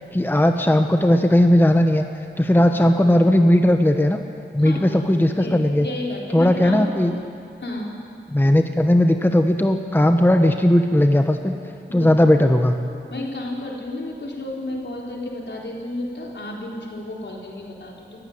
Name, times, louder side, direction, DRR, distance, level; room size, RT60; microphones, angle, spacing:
voice 1, 0.1-2.0 2.4-4.2 4.5-5.9 6.3-7.2 8.3-11.5 11.9-12.8, left 1 dB, 10° left, 5 dB, 1.1 m, -17 dB
voice 2, 4.6-5.0 5.4-6.8 7.6-7.9 11.9-12.1 13.1-18.2, left 1 dB, 75° left, -2 dB, 4.1 m, -32 dB
23.5 x 15.0 x 9.5 m, 2.4 s
wide cardioid pair, 100°, 19 cm